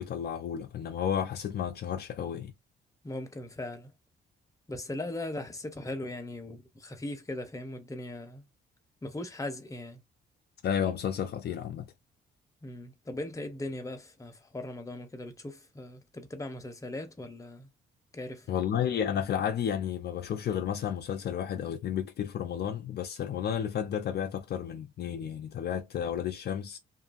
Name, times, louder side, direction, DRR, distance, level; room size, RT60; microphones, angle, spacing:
voice 1, 0.0-2.5 10.6-11.9 18.5-26.8, left 9 dB, 55° left, 0.5 m, -32 dB
voice 2, 3.0-3.9 4.7-8.5 9.0-10.0 12.6-17.7 18.1-18.5, left 1 dB, 15° left, 0.9 m, -39 dB
2.6 x 2.5 x 2.5 m
cardioid pair, 90°, 20 cm